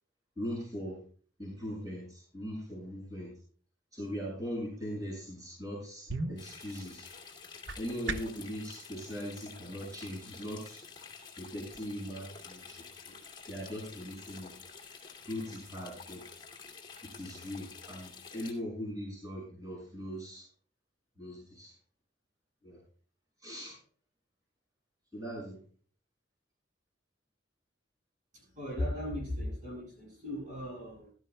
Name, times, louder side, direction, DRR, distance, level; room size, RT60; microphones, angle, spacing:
voice 1, 0.4-1.0 1.4-3.3 3.9-7.1 7.8-10.8 11.4-12.8 13.1-13.2 13.5-14.5 15.3-16.2 17.1-20.5 21.2-21.7 22.6-22.8 23.4-23.8 25.1-25.6, equal, 20° right, -5 dB, 5.5 m, -40 dB
sound 1, 5.7-8.5, right 3 dB, 65° right, 0.9 m, -39 dB
sound 2, 6.4-18.5, left 5 dB, 25° left, 2.3 m, -50 dB
voice 2, 28.3-31.1, left 1 dB, 40° right, -2 dB, 6.9 m, -37 dB
15.5 x 13.5 x 2.2 m, 0.44 s
head